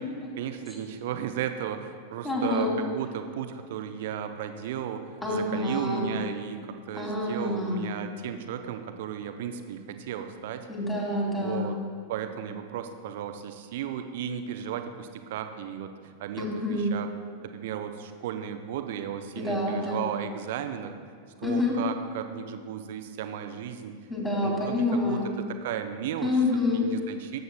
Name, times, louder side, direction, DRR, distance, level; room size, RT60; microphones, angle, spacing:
voice 1, 0.4-10.7 11.4-11.8 12.1-17.1 17.4-20.9 21.4-23.9 24.4-25.2 25.5-26.3 26.7-27.4, right 9 dB, 55° right, 8 dB, 0.6 m, -35 dB
voice 2, 2.2-2.7 5.2-6.0 6.9-7.8 10.7-11.7 16.4-16.9 19.4-20.0 21.4-21.7 24.1-25.3 26.2-26.9, left 2 dB, 15° left, -3 dB, 2.3 m, -27 dB
13.0 x 7.9 x 2.2 m, 2.2 s
figure-of-eight pair, 90°, 0 cm